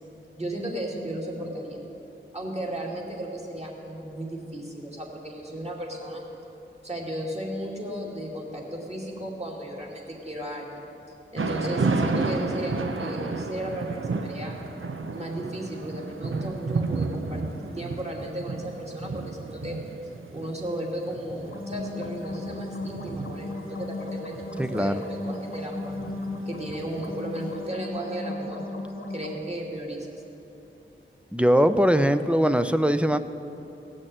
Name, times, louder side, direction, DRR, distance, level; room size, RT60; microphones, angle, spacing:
voice 1, 0.4-1.8 2.3-6.3 6.8-10.9 11.3-14.6 15.1-17.4 17.7-19.8 20.3-26.0 26.5-28.7 29.1-30.2, right 1 dB, 30° right, -2 dB, 2.6 m, -35 dB
Thunder / Rain, 11.4-27.4, right 3 dB, 80° right, 0.8 m, -32 dB
sound 1, 21.4-29.3, left 2 dB, 90° left, 1.4 m, -36 dB
voice 2, 24.6-25.0 31.3-33.2, equal, 5° right, 10 dB, 0.6 m, -21 dB
17.0 x 6.4 x 9.0 m, 2.9 s
wide cardioid pair, 65°, 21 cm